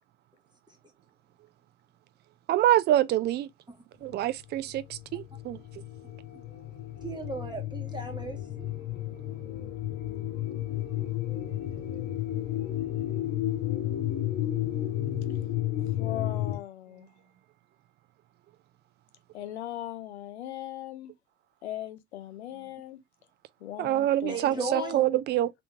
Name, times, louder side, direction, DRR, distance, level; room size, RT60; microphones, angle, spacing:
voice 1, 2.5-3.5 4.0-5.6 23.8-25.5, right 13 dB, 30° right, 0.4 m, -26 dB
sound 1, 4.6-16.6, left 12 dB, 50° left, 1.1 m, -32 dB
voice 2, 7.0-8.7 24.3-25.0, right 4 dB, 15° right, 1.0 m, -36 dB
voice 3, 15.9-17.1 19.3-21.1 21.6-23.0 23.6-25.0, left 13 dB, 80° left, 0.7 m, -39 dB
3.4 x 3.0 x 3.4 m
figure-of-eight pair, 65°, 33 cm